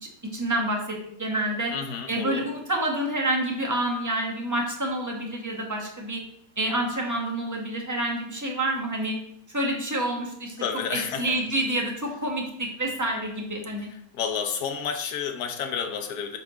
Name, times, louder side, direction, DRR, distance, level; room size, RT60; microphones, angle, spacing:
voice 1, 0.0-1.7 2.1-6.2 6.6-9.2 9.5-10.5 10.9-13.9, right 1 dB, 15° right, 0 dB, 0.8 m, -28 dB
voice 2, 1.7-2.5 10.6-11.4 14.1-16.4, left 7 dB, 60° left, 5 dB, 1.2 m, -30 dB
7.6 x 5.7 x 3.7 m, 0.70 s
omnidirectional pair, 2.2 m